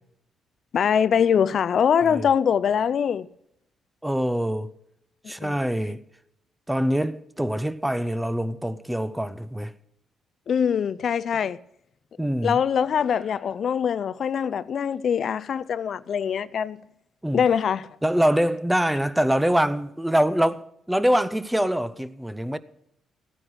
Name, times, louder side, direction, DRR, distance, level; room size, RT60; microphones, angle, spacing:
voice 1, 0.7-3.3 5.2-5.5 10.5-11.6 12.4-16.8 17.3-17.9, left 7 dB, 55° left, 0.4 m, -23 dB
voice 2, 4.0-4.7 5.3-6.0 6.7-9.7 12.2-12.6 17.2-17.5 18.0-22.6, equal, 5° right, 0.7 m, -24 dB
14.5 x 9.8 x 6.3 m
cardioid pair, 90°, 0 cm